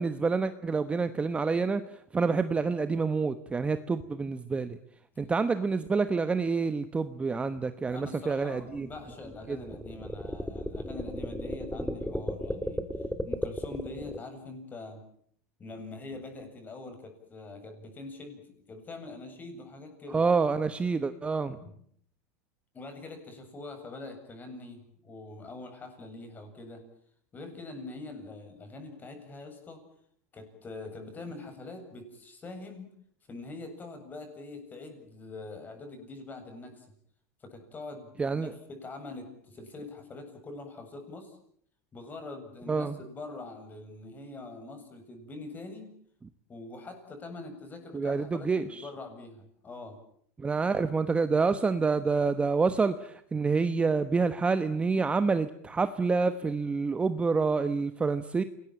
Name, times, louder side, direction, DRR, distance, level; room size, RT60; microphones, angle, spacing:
voice 1, 0.0-4.8 5.2-8.9 9.5-9.6 20.1-21.6 38.2-38.5 42.7-43.0 47.9-48.8 50.4-58.4, right 4 dB, 15° right, 11 dB, 1.1 m, -27 dB
voice 2, 7.9-15.0 15.6-20.2 21.6-21.8 22.7-26.8 27.3-29.8 30.3-32.9 33.3-36.9 37.4-41.4 41.9-45.9 46.5-50.0, left 2 dB, 20° left, 6 dB, 7.9 m, -44 dB
sound 1, 8.7-14.2, left 1 dB, 5° left, 1.9 m, -35 dB
28.0 x 20.0 x 9.0 m, 0.66 s
supercardioid pair, 130°, 8 cm